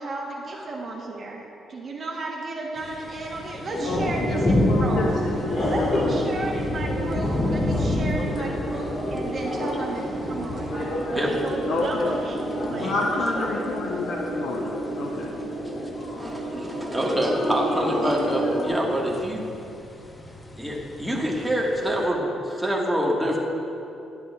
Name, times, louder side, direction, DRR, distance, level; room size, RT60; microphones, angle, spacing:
voice 1, 0.0-5.1 5.6-10.7 11.1-13.6, right 2 dB, 45° right, -1 dB, 0.9 m, -34 dB
sound 1, 2.8-22.1, left 1 dB, 25° left, 0.7 m, -31 dB
sound 2, 3.7-18.7, equal, 45° left, 1.5 m, -30 dB
voice 2, 3.8-6.2 7.3-7.6 8.1-8.5 11.7-12.1 12.7-15.3, left 3 dB, 75° left, 0 dB, 0.7 m, -29 dB
voice 3, 16.1-19.4 20.6-23.4, equal, 5° right, -2 dB, 1.4 m, -26 dB
11.0 x 10.5 x 2.3 m, 2.8 s
cardioid pair, 90°, 0 cm